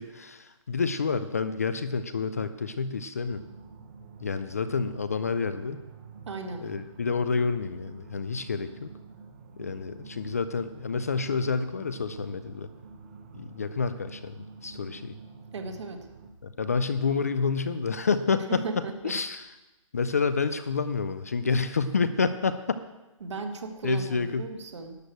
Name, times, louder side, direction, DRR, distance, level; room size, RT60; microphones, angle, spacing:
voice 1, 0.0-3.5 4.2-5.8 6.6-8.9 9.6-12.7 13.3-15.2 16.4-18.6 19.0-19.5 19.9-22.8 23.8-24.4, left 5 dB, 30° left, 12 dB, 0.4 m, -29 dB
sound 1, 3.3-16.3, right 5 dB, 25° right, 0.7 m, -48 dB
voice 2, 6.3-6.7 15.5-16.1 18.5-19.2 23.2-25.0, right 3 dB, 60° right, 5 dB, 1.8 m, -36 dB
11.5 x 6.4 x 7.9 m, 1.0 s
hypercardioid pair, 175°, 17 cm